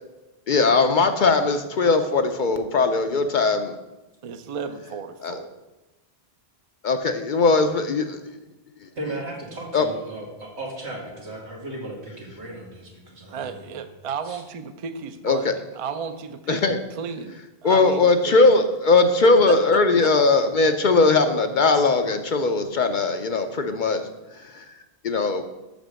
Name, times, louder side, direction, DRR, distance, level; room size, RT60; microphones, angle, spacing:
voice 1, 0.5-3.7 5.2-5.4 6.8-8.2 9.7-9.9 15.2-15.5 16.5-16.8 17.6-24.0 24.4-24.6 25.0-25.4, left 3 dB, 55° left, 7 dB, 0.6 m, -19 dB
voice 2, 4.2-5.5 13.3-18.4 19.2-20.1, right 6 dB, 45° right, 9 dB, 0.5 m, -33 dB
voice 3, 9.0-13.9 14.2-14.4, right 2 dB, 85° right, -2 dB, 2.1 m, -36 dB
6.6 x 5.1 x 6.2 m, 1.0 s
omnidirectional pair, 1.1 m